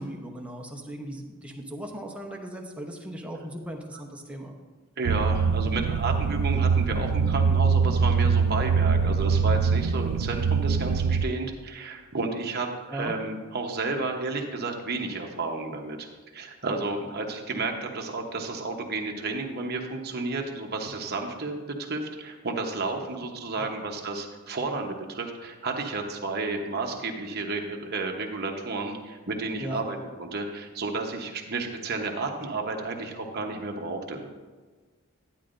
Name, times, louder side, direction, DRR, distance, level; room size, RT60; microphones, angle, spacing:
voice 1, 0.0-4.5 12.9-13.1 17.5-17.7 23.6-23.7 29.6-29.8, right 1 dB, 5° right, 1 dB, 0.8 m, -37 dB
voice 2, 5.0-16.1 16.3-34.3, right 3 dB, 45° right, 2 dB, 1.0 m, -32 dB
sound 1, 5.0-11.2, right 5 dB, 90° right, 0.3 m, -23 dB
10.5 x 9.6 x 2.6 m, 1.3 s
head